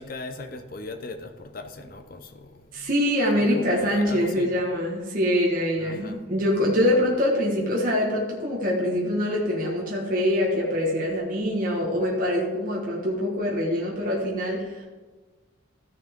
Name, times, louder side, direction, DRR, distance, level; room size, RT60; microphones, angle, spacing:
voice 1, 0.0-2.9 3.3-4.7 5.8-6.2 6.5-6.8, left 3 dB, 45° left, 7 dB, 0.7 m, -39 dB
voice 2, 2.7-14.9, left 1 dB, 40° right, -3 dB, 1.5 m, -24 dB
14.5 x 6.5 x 3.7 m, 1.3 s
head